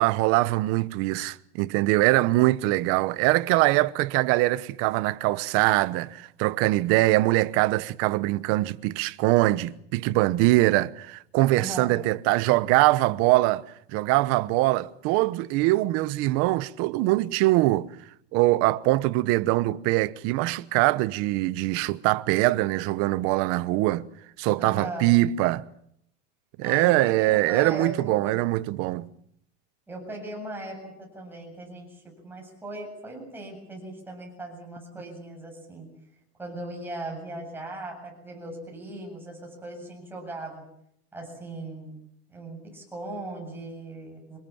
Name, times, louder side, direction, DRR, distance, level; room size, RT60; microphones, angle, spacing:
voice 1, 0.0-13.7 13.9-17.9 18.3-24.0 24.4-25.6 26.6-29.1, right 18 dB, 45° right, 1.0 m, -23 dB
voice 2, 11.6-12.0 24.6-25.1 26.6-28.4 29.9-35.9 36.4-40.6 41.1-42.0 42.3-44.4, right 1 dB, 5° right, 7.9 m, -38 dB
26.0 x 21.0 x 7.3 m
supercardioid pair, 170°, 31 cm